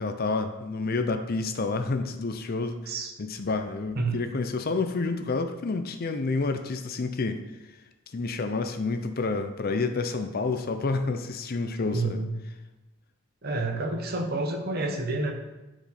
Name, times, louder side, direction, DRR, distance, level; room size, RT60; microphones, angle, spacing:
voice 1, 0.0-2.9 3.2-7.4 8.1-12.2, left 3 dB, 40° left, 8 dB, 0.5 m, -29 dB
voice 2, 11.9-12.3 13.4-15.3, right 2 dB, 45° right, 3 dB, 1.1 m, -29 dB
10.0 x 5.0 x 4.2 m, 1.1 s
head